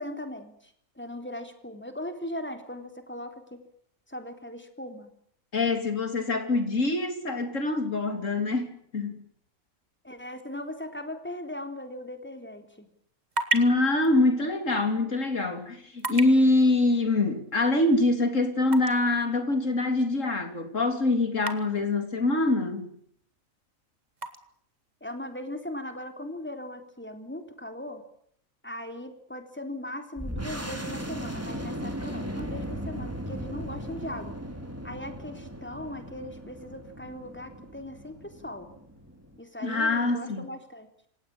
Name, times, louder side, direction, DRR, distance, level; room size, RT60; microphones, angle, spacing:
voice 1, 0.0-3.6 4.1-5.1 10.0-12.9 25.0-28.0 28.6-34.4 34.8-38.7 39.4-40.9, left 1 dB, 10° left, 3.6 m, -39 dB
voice 2, 5.5-9.2 13.5-22.9 39.6-40.5, left 2 dB, 65° left, 3.7 m, -24 dB
sound 1, 12.9-26.7, right 2 dB, 30° right, 2.1 m, -40 dB
sound 2, 30.2-39.4, equal, 10° right, 3.4 m, -37 dB
27.5 x 17.0 x 8.8 m
omnidirectional pair, 1.4 m